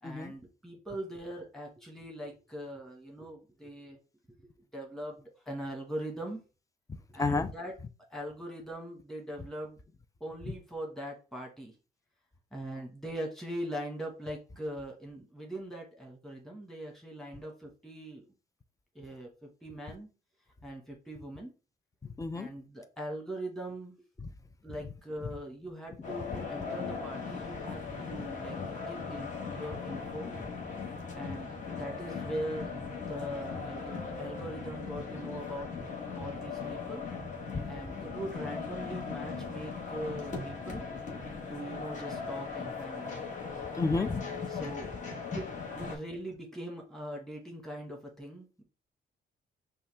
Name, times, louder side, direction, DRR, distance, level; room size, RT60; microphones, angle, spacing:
voice 1, 0.0-4.0 4.7-6.4 7.1-7.7 8.1-9.8 10.2-11.7 12.5-18.2 18.9-20.1 20.6-21.5 22.3-24.0 24.6-30.3 31.1-32.7 33.1-35.7 36.1-37.0 37.7-40.9 41.5-43.2 44.5-44.9 45.3-45.5 45.8-48.6, right 1 dB, ahead, 1.7 m, -41 dB
voice 2, 7.2-7.5 22.2-22.5 24.2-24.3 37.5-37.6 43.8-44.6, left 3 dB, 15° left, 0.5 m, -31 dB
sound 1, 26.0-46.0, left 5 dB, 40° left, 1.7 m, -39 dB
5.5 x 2.5 x 3.5 m
cardioid pair, 100°, 19 cm